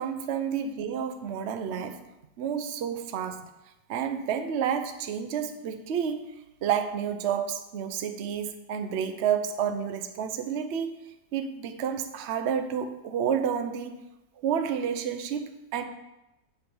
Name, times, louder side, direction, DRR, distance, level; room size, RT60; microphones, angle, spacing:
voice 1, 0.0-2.0 2.4-3.5 3.9-6.3 6.6-10.9 11.3-14.0 14.4-15.8, right 8 dB, 55° right, 7 dB, 0.8 m, -30 dB
8.2 x 5.4 x 7.1 m, 0.92 s
omnidirectional pair, 1.7 m